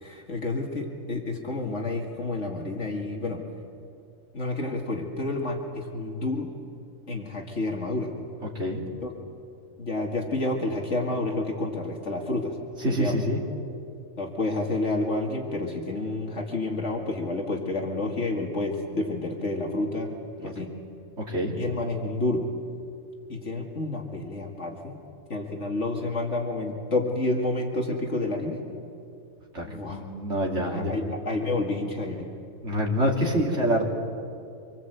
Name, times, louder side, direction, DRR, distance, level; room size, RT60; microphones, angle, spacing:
voice 1, 0.0-3.4 4.3-6.5 7.1-8.1 9.0-9.1 9.8-12.5 12.9-13.2 14.2-20.1 20.4-20.7 21.5-22.4 23.3-25.0 25.3-28.6 29.6-30.0 30.7-32.3, left 2 dB, 65° left, 1 dB, 2.3 m, -29 dB
voice 2, 12.8-13.4 20.4-20.5 21.3-21.5 29.5-31.0 32.6-33.8, equal, 60° right, -2 dB, 3.3 m, -26 dB
26.0 x 22.0 x 8.0 m, 2.4 s
omnidirectional pair, 1.4 m